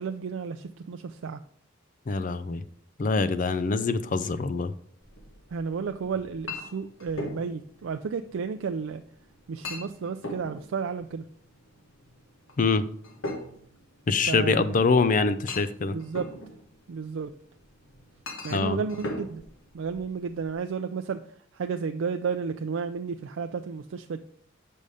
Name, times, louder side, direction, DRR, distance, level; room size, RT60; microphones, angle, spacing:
voice 1, 0.0-1.4 5.5-9.0 9.5-11.2 14.3-14.8 15.9-16.3 16.9-17.3 18.4-19.4 19.7-21.2 21.5-24.2, right 5 dB, 80° right, 6 dB, 0.4 m, -32 dB
voice 2, 2.1-2.6 3.0-4.7 12.6-12.8 14.1-16.0 18.5-18.8, left 4 dB, 40° left, 13 dB, 0.4 m, -24 dB
Chink clink, 5.0-20.5, left 1 dB, 85° left, 1.2 m, -42 dB
6.7 x 5.4 x 4.9 m, 0.63 s
head